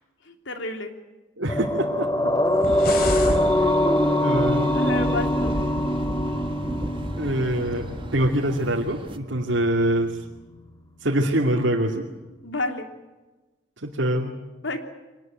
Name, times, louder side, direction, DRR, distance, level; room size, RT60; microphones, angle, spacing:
voice 1, 0.2-0.9 4.7-5.6 12.4-12.9 14.6-14.8, left 2 dB, 80° left, 5 dB, 3.2 m, -30 dB
voice 2, 1.4-2.1 3.6-3.7 4.2-4.8 7.2-7.9 8.1-10.2 11.0-12.0 13.8-14.4, right 1 dB, 80° right, -1 dB, 2.6 m, -24 dB
sound 1, 1.5-10.1 10.4-10.5, left 1 dB, 20° left, 1.8 m, -24 dB
sound 2, 2.4-3.4, left 3 dB, 50° left, 4.2 m, -31 dB
sound 3, 2.6-9.2, right 1 dB, 25° right, 1.7 m, -33 dB
24.5 x 20.0 x 9.1 m, 1.1 s
head